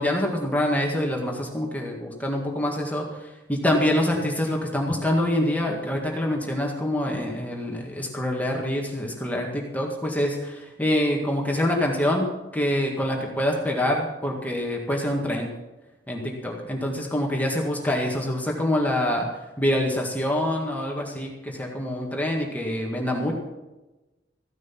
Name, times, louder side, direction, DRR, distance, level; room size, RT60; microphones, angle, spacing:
voice 1, 0.0-3.0 3.5-12.3 12.5-15.5 16.1-19.3 19.6-23.3, left 1 dB, 10° left, 0 dB, 1.9 m, -25 dB
15.0 x 11.0 x 5.9 m, 1.1 s
head